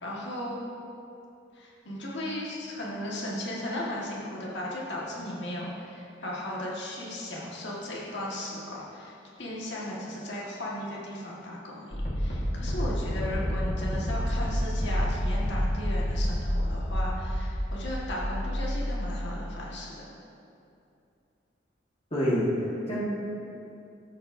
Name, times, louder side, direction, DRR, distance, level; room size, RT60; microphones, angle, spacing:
voice 1, 0.0-0.6 1.5-20.1, left 1 dB, 70° left, -5 dB, 1.6 m, -36 dB
sound 1, 11.9-19.6, equal, 45° left, 1.5 m, -29 dB
voice 2, 22.1-23.1, equal, 30° left, -8 dB, 1.5 m, -27 dB
13.0 x 7.3 x 2.6 m, 2.6 s
head